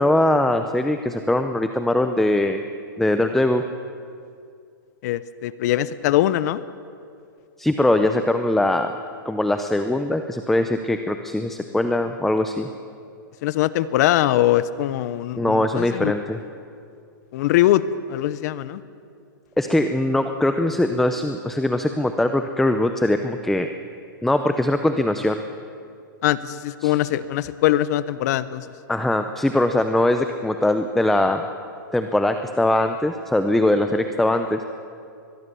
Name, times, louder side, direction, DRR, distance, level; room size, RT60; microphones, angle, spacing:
voice 1, 0.0-2.6 3.0-3.6 7.6-8.9 9.2-12.7 15.4-16.4 19.6-23.7 24.2-25.4 26.8-26.9 28.9-31.4 31.9-34.6, left 1 dB, ahead, 7 dB, 0.6 m, -21 dB
voice 2, 5.0-6.6 13.4-16.1 17.3-17.8 18.1-18.8 26.2-28.6, left 14 dB, 50° left, 16 dB, 0.8 m, -22 dB
22.5 x 20.5 x 6.9 m, 2.4 s
hypercardioid pair, 150°, 11 cm